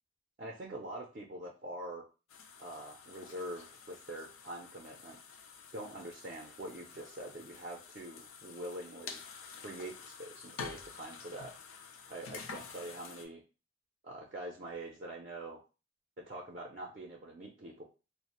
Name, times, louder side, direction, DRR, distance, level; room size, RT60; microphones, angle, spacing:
voice 1, 0.4-2.0 2.6-5.2 5.7-9.2 9.6-11.5 12.1-13.4 14.0-15.6 16.2-17.8, right 1 dB, 40° right, -1 dB, 0.4 m, -44 dB
sound 1, 2.3-13.3, left 5 dB, 80° left, 0.4 m, -49 dB
2.4 x 2.0 x 2.8 m, 0.32 s
head